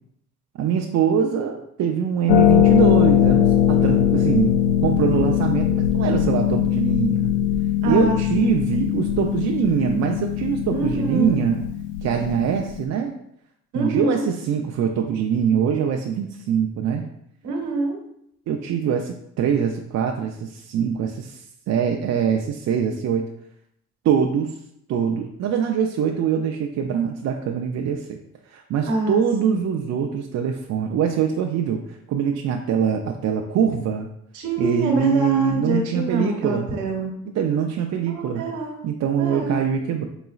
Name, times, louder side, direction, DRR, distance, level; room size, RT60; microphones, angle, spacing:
voice 1, 0.6-4.5 4.8-7.2 7.9-11.6 12.0-13.2 13.7-17.1 18.5-23.2 24.0-24.6 24.9-28.2 28.5-34.1 34.6-36.7 37.3-38.4 38.8-40.1, right 8 dB, 60° right, 2 dB, 0.4 m, -23 dB
Harp, 2.3-12.8, left 11 dB, 90° left, 0.5 m, -20 dB
voice 2, 7.8-8.5 10.7-11.4 13.7-14.3 17.4-18.0 28.9-29.2 29.5-29.6 34.3-37.1 38.1-38.9 39.2-39.6, right 1 dB, 80° right, 1 dB, 1.0 m, -25 dB
3.9 x 3.8 x 2.4 m, 0.74 s
cardioid pair, 90°, 30 cm